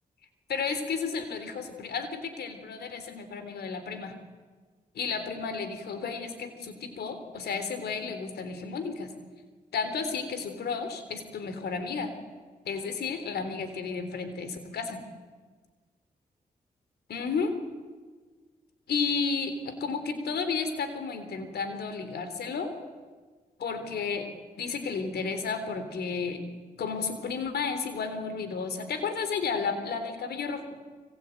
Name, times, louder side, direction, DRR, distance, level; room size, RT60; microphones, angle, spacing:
voice 1, 0.5-4.1 5.0-9.1 9.7-12.1 12.7-15.0 17.1-17.5 18.9-22.7 23.6-24.3 24.6-26.4 26.8-30.8, left 5 dB, 85° left, 9 dB, 3.6 m, -32 dB
25.5 x 24.5 x 9.2 m, 1.4 s
cardioid pair, 50°, 16 cm